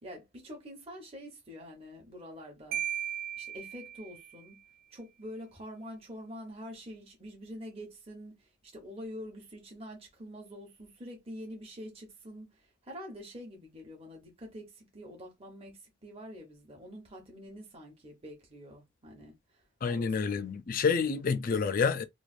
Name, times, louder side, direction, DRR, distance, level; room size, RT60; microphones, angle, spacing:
voice 1, 0.0-2.8 3.4-4.6 4.9-19.3 19.9-20.2 21.0-21.3, equal, 30° right, 0.9 m, -46 dB
Marimba xylophone, 2.7-4.5, right 10 dB, 55° right, 0.3 m, -37 dB
voice 2, 19.8-22.0, left 5 dB, 45° left, 0.3 m, -28 dB
3.2 x 2.3 x 2.5 m
head